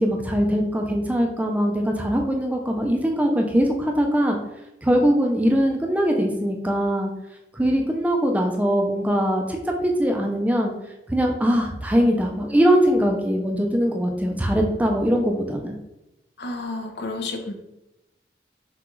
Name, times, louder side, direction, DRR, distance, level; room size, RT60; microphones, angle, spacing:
voice 1, 0.0-4.4 4.8-7.1 7.5-10.7 11.1-15.8, equal, 10° right, 2 dB, 0.4 m, -21 dB
voice 2, 16.4-17.5, left 3 dB, 70° left, 4 dB, 0.6 m, -31 dB
6.0 x 2.3 x 3.0 m, 0.93 s
head